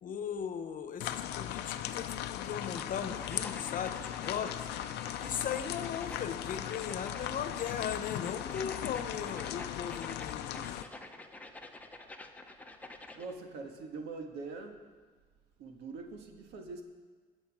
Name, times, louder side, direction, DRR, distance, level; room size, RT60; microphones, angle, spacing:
voice 1, 0.0-4.7 5.2-10.9, left 7 dB, 55° left, 9 dB, 1.0 m, -38 dB
sound 1, 1.0-10.8, left 12 dB, 80° left, 0.6 m, -38 dB
sound 2, 2.6-13.3, left 2 dB, 10° left, 0.9 m, -49 dB
voice 2, 13.1-14.8 15.6-16.8, right 4 dB, 80° right, 3 dB, 1.8 m, -43 dB
21.5 x 7.2 x 5.0 m, 1.4 s
cardioid pair, 110°, 17 cm